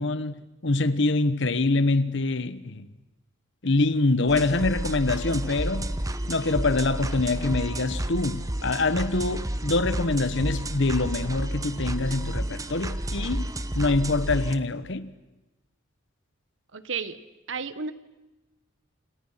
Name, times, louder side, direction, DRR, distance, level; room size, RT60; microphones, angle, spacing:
voice 1, 0.0-2.9 3.6-5.9 6.3-13.5 13.7-15.1, left 2 dB, 60° left, 1.2 m, -25 dB
sound 1, 4.3-14.5, right 1 dB, 15° right, 1.0 m, -31 dB
voice 2, 16.7-17.9, right 5 dB, 65° right, 1.3 m, -33 dB
29.0 x 28.0 x 5.8 m
head